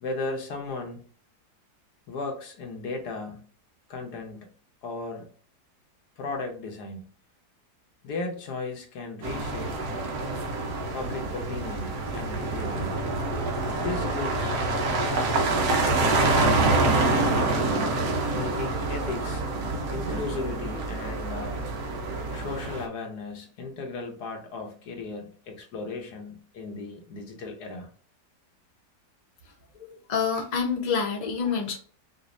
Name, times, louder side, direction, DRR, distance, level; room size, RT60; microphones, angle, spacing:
voice 1, 0.0-1.0 2.1-3.5 3.9-4.5 4.8-5.3 6.2-7.0 8.0-9.9 10.9-13.0 13.7-14.6 14.8-15.6 16.0-16.5 16.8-17.9 18.3-19.4 19.9-21.7 22.3-27.9, left 3 dB, 70° left, 1.4 m, -36 dB
sound 1, 9.2-22.9, right 2 dB, 65° right, 1.3 m, -26 dB
voice 2, 29.7-31.8, left 6 dB, 35° left, 0.8 m, -27 dB
5.2 x 2.5 x 2.5 m
omnidirectional pair, 1.8 m